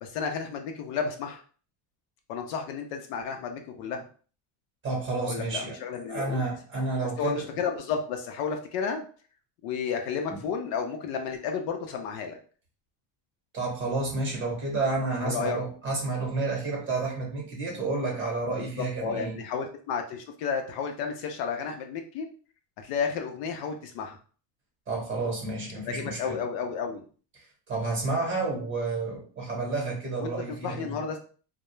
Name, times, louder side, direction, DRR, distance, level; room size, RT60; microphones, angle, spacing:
voice 1, 0.0-1.4 2.3-4.0 5.2-6.4 7.2-9.0 9.6-12.4 15.2-15.6 18.6-22.3 22.8-24.2 25.8-27.0 30.2-30.3 30.6-31.2, left 6 dB, 60° left, 4 dB, 0.6 m, -32 dB
voice 2, 4.8-5.8 6.1-7.4 13.5-19.4 24.9-26.4 27.4-31.0, right 3 dB, 25° right, -1 dB, 0.9 m, -30 dB
2.3 x 2.1 x 3.0 m, 0.41 s
cardioid pair, 140°, 49 cm